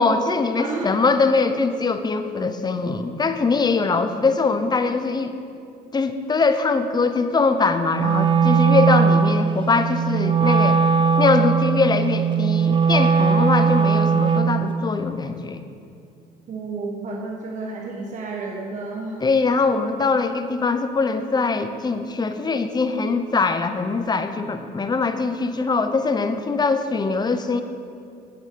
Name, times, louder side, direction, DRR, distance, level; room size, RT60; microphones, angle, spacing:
voice 1, 0.0-5.3 5.9-10.8 11.2-15.6 19.2-27.6, left 4 dB, 25° left, 9 dB, 0.8 m, -22 dB
voice 2, 0.6-0.9 16.5-19.2, right 3 dB, 45° right, -1 dB, 1.4 m, -31 dB
Wind instrument woodwind instrument, 7.9-14.6, right 6 dB, 30° right, 0.6 m, -19 dB
10.5 x 8.2 x 6.9 m, 2.5 s
cardioid pair, 110°, 17 cm